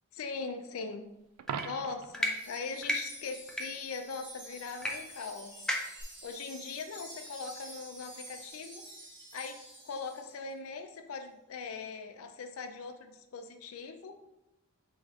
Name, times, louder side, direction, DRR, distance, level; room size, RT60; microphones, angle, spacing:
voice 1, 0.1-1.1 1.6-5.7 6.2-8.8 9.3-9.6 9.8-14.1, left 4 dB, 70° left, 7 dB, 0.4 m, -40 dB
Coin (dropping), 1.4-2.2 8.3-8.5, right 7 dB, 80° right, 0.3 m, -39 dB
sound 1, 1.5-1.7 2.1-2.3 2.8-3.0 3.5-3.6 4.8-4.9 5.2-5.3 5.7-6.0, left 1 dB, 5° left, 0.4 m, -31 dB
Wind chime, 2.2-10.4, right 1 dB, 20° right, 1.2 m, -49 dB
4.8 x 3.0 x 3.6 m, 0.89 s
head